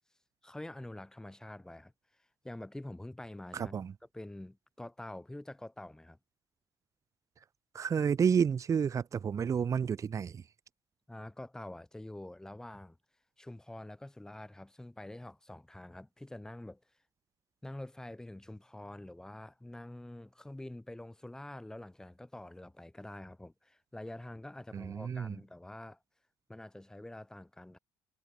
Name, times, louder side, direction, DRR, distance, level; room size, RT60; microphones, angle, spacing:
voice 1, 0.4-1.9 2.4-3.8 4.1-6.2 11.1-13.0 13.4-16.8 17.6-26.0 26.5-27.8, left 1 dB, 5° left, 4.5 m, -46 dB
voice 2, 3.5-3.9 7.7-10.4 24.7-25.4, right 7 dB, 35° right, 1.3 m, -30 dB
cardioid pair, 135°, 9 cm